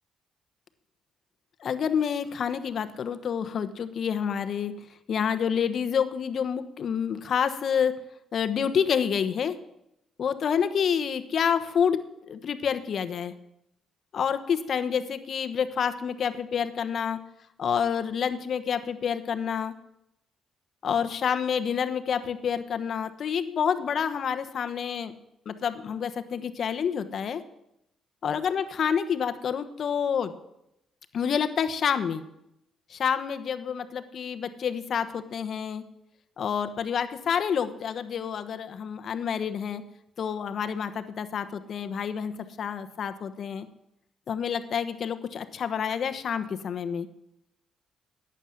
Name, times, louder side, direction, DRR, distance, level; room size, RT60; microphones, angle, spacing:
voice 1, 1.6-4.7 5.1-8.0 8.3-9.6 10.2-13.3 14.1-17.2 17.6-19.7 20.8-25.1 25.4-27.4 28.2-30.3 31.1-32.2 32.9-35.8 36.4-39.8 40.2-43.7 44.3-47.1, left 7 dB, 60° left, 10 dB, 1.1 m, -28 dB
11.5 x 9.1 x 7.9 m, 0.83 s
cardioid pair, 75°, 0 cm